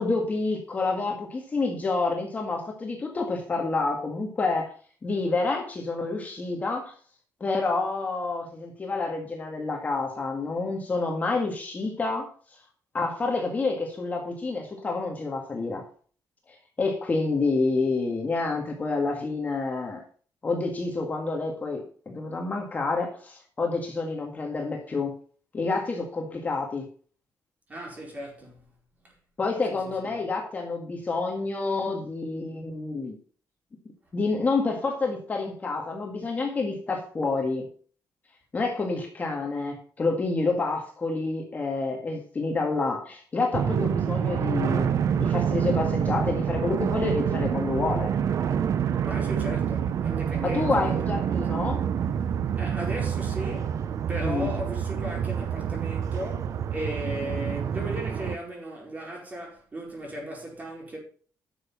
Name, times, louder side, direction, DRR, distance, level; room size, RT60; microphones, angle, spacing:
voice 1, 0.0-4.7 5.0-6.9 7.4-12.3 12.9-15.8 16.5-20.0 20.4-25.2 25.5-26.9 29.4-33.2 34.1-37.7 38.5-48.1 50.4-51.8 54.2-54.5, left 3 dB, 25° left, 1.8 m, -28 dB
voice 2, 27.7-28.7 29.0-29.1 29.7-30.1 49.0-51.2 52.6-61.0, right 1 dB, 25° right, 4.7 m, -36 dB
sound 1, 43.5-58.4, right 8 dB, 50° right, 0.7 m, -27 dB
11.0 x 6.9 x 5.7 m
cardioid pair, 160°, 7 cm